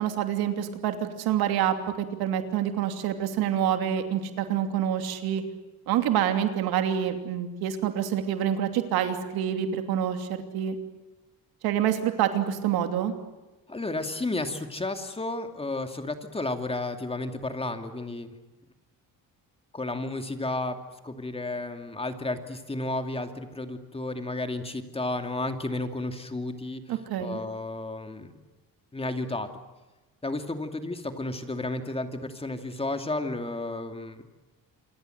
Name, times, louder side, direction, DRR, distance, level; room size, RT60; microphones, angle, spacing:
voice 1, 0.0-5.4 5.9-10.8 11.6-13.1 26.9-27.4, right 10 dB, 90° right, 6 dB, 2.9 m, -27 dB
voice 2, 13.7-18.3 19.7-20.8 21.0-26.8 27.2-28.3 28.9-29.5 30.2-34.2, left 2 dB, 15° left, 6 dB, 2.6 m, -32 dB
27.5 x 23.5 x 8.0 m, 1.1 s
cardioid pair, 115°, 36 cm